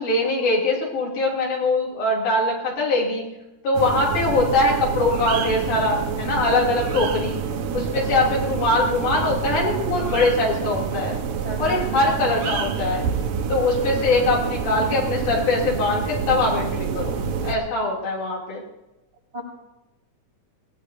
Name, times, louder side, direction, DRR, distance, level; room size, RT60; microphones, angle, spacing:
voice 1, 0.0-3.3 3.6-7.4 7.7-11.2 11.6-13.0 13.5-18.6, left 2 dB, 75° left, -4 dB, 4.3 m, -22 dB
sound 1, 3.7-17.6, right 6 dB, 75° right, 2.5 m, -27 dB
voice 2, 11.4-11.8 19.3-19.4, right 1 dB, 40° right, -4 dB, 7.6 m, -32 dB
24.5 x 19.0 x 2.7 m, 0.98 s
omnidirectional pair, 3.6 m